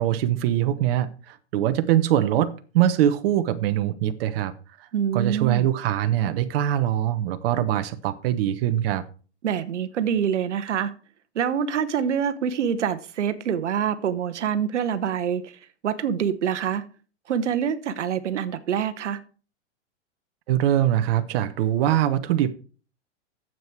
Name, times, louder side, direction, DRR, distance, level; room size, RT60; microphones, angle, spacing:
voice 1, 0.0-4.5 4.8-4.9 5.1-9.0 20.5-22.5, right 12 dB, 55° right, 1.0 m, -23 dB
voice 2, 4.9-5.7 9.4-10.9 11.3-15.5 15.8-16.8 17.3-19.2, right 8 dB, 80° right, 1.0 m, -25 dB
9.3 x 7.7 x 4.5 m
hypercardioid pair, 115°, 35 cm